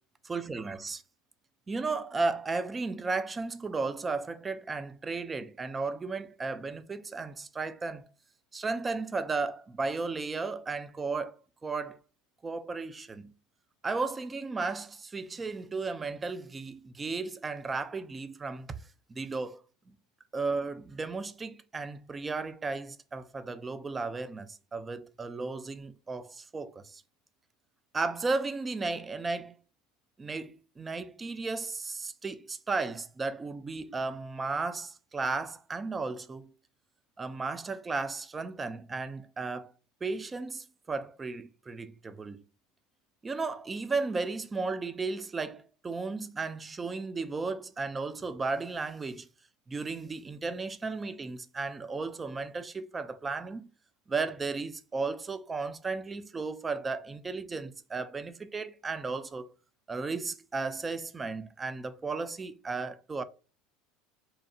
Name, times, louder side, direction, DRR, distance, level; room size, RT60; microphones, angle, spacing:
voice 1, 0.2-1.0 1.7-8.1 8.5-11.4 11.6-12.0 12.4-13.3 13.8-18.7 19.1-19.6 20.3-27.0 27.9-29.6 30.2-36.5 37.2-39.7 40.0-42.4 43.2-49.3 49.7-53.7 54.1-59.5 59.9-63.2, right 3 dB, 20° right, 0.3 m, -34 dB
2.8 x 2.0 x 2.5 m
hypercardioid pair, 80°, 0 cm